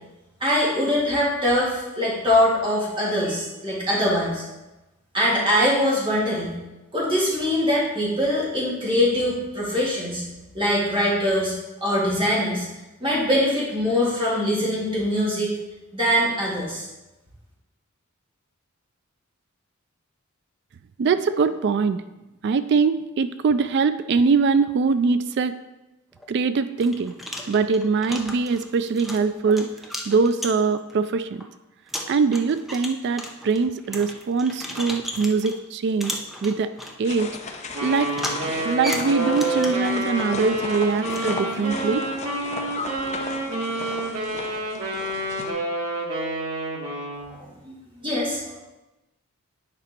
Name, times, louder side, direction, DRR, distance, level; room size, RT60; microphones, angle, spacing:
voice 1, 0.4-4.4 5.1-6.6 6.9-10.2 10.5-11.5 11.8-12.7 13.0-15.6 15.9-16.9 47.2-48.6, equal, 25° right, -6 dB, 2.7 m, -23 dB
voice 2, 21.0-22.0 22.4-25.5 26.3-27.1 27.5-29.7 30.1-31.4 32.1-36.1 36.4-36.7 37.0-37.4 37.8-38.1 38.6-42.1, right 5 dB, 50° right, 12 dB, 0.3 m, -22 dB
sound 1, 26.1-26.3 26.8-30.9 31.4-31.5 31.9-35.6 36.0-37.0 38.1-39.9 41.1-41.3, equal, ahead, 0.7 m, -35 dB
sound 2, 37.0-45.5, left 3 dB, 30° left, 0.7 m, -35 dB
Wind instrument woodwind instrument, 37.7-47.3, right 1 dB, 90° right, 1.9 m, -29 dB
9.8 x 5.1 x 4.4 m, 1.0 s
head